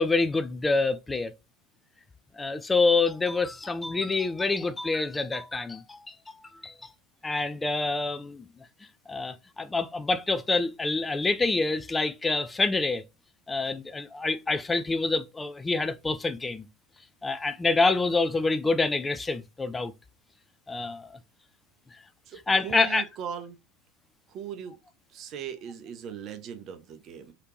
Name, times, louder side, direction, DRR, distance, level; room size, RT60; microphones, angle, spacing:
voice 1, 0.0-1.3 2.4-6.1 6.6-6.7 7.2-8.5 9.1-13.0 13.5-16.7 17.2-19.9 20.7-21.2 22.5-23.1, left 3 dB, 15° left, 0.4 m, -26 dB
voice 2, 22.3-23.6 24.3-24.8 25.1-27.3, right 8 dB, 40° right, 0.6 m, -39 dB
3.3 x 2.8 x 3.0 m
figure-of-eight pair, 80°, 0 cm